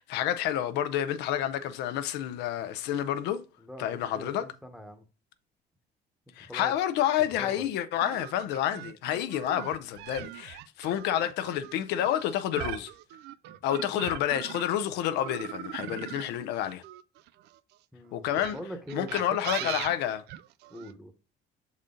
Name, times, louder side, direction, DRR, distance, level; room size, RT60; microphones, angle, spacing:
voice 1, 0.0-3.4 3.8-4.5 6.4-12.9 13.6-16.8 18.1-18.6 18.9-20.2, left 11 dB, 90° left, 0.6 m, -29 dB
voice 2, 3.6-5.0 6.4-6.7 7.4-7.7 13.5-13.6 17.9-19.3 19.6-19.9 20.7-21.1, equal, ahead, 1.0 m, -43 dB
sound 1, 8.0-14.8 15.2-17.6 18.3-20.9, right 14 dB, 80° right, 0.4 m, -40 dB
6.3 x 4.1 x 3.7 m
cardioid pair, 110°, 17 cm